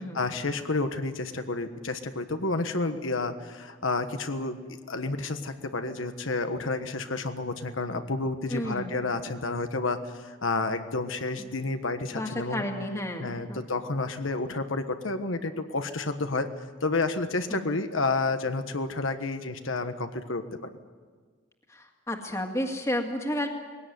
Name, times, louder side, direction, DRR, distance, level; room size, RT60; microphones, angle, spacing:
voice 1, 0.0-4.6 4.9-12.6 13.2-16.5 16.8-20.7, left 3 dB, 85° left, 7 dB, 1.4 m, -30 dB
voice 2, 8.5-9.0 11.4-11.5 12.1-13.6 17.5-17.6 21.7-23.5, left 1 dB, 15° left, 3 dB, 2.0 m, -32 dB
21.0 x 17.0 x 9.5 m, 1.5 s
head